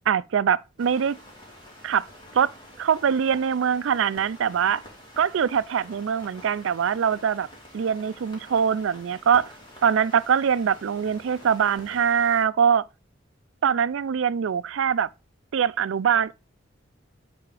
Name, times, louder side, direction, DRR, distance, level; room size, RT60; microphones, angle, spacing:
voice 1, 0.1-1.2 1.8-2.1 2.3-2.5 2.8-4.8 5.2-7.5 7.7-9.5 9.8-12.9 13.6-15.1 15.5-16.3, right 7 dB, 85° right, 0.4 m, -23 dB
sound 1, 0.8-12.4, equal, 25° left, 2.5 m, -47 dB
9.7 x 3.5 x 4.8 m
head